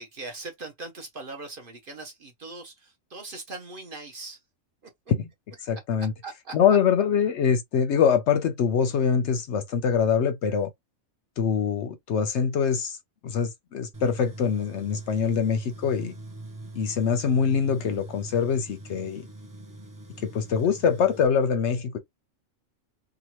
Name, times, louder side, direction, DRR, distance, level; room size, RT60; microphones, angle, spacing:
voice 1, 0.0-4.4 6.2-6.6, right 3 dB, 50° right, 0.8 m, -40 dB
voice 2, 5.6-6.1 6.5-10.7 11.4-13.0 13.2-16.1 16.7-19.2 20.2-22.0, left 7 dB, 65° left, 0.8 m, -24 dB
Tools, 13.9-21.3, right 2 dB, 20° right, 0.5 m, -43 dB
2.9 x 2.3 x 2.9 m
omnidirectional pair, 1.4 m